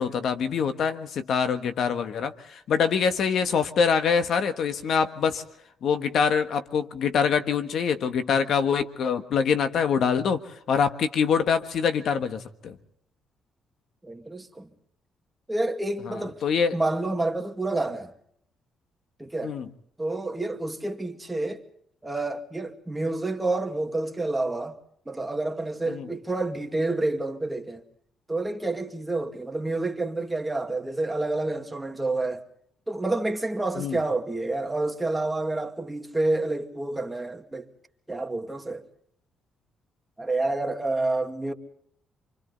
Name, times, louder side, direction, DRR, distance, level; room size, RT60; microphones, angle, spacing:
voice 1, 0.0-5.4 5.8-12.8 16.4-16.7 19.4-19.7 25.9-26.1 33.8-34.0, left 6 dB, 65° left, 1.5 m, -24 dB
voice 2, 14.0-14.7 15.5-16.4 16.7-18.1 19.2-19.5 20.0-21.6 22.0-24.8 25.1-27.8 28.3-32.4 32.9-37.7 38.1-38.8 40.2-41.5, right 2 dB, 10° right, 2.3 m, -28 dB
28.5 x 24.5 x 4.1 m
cardioid pair, 90°, 0 cm